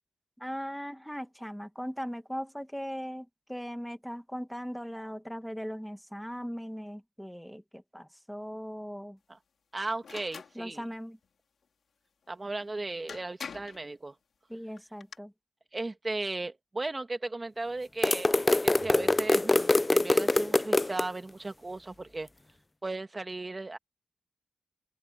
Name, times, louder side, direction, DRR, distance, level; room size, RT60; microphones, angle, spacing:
voice 1, 0.4-9.2 10.6-11.2 14.5-15.3, equal, ahead, 2.2 m, -39 dB
voice 2, 9.7-10.8 12.3-14.1 15.7-22.3 22.8-23.8, right 2 dB, 25° right, 2.1 m, -36 dB
sound 1, 10.0-10.5 12.6-12.7 13.1-13.8 14.8-15.2, left 6 dB, 70° left, 4.2 m, -43 dB
sound 2, 18.0-21.0, left 2 dB, 25° left, 0.5 m, -24 dB
open air
cardioid pair, 85°, 0 cm